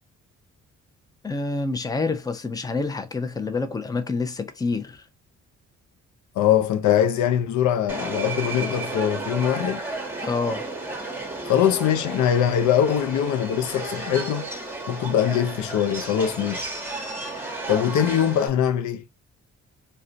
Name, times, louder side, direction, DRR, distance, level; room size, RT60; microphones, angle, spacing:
voice 1, 1.2-5.0 10.2-10.6, left 3 dB, 10° left, 0.5 m, -27 dB
voice 2, 6.4-9.8 11.4-14.5 14.9-16.7 17.7-19.0, left 9 dB, 75° left, 0.5 m, -22 dB
Subway metro underground, 7.9-18.5, right 2 dB, 5° right, 1.0 m, -33 dB
2.4 x 2.2 x 3.8 m
cardioid pair, 90°, 30 cm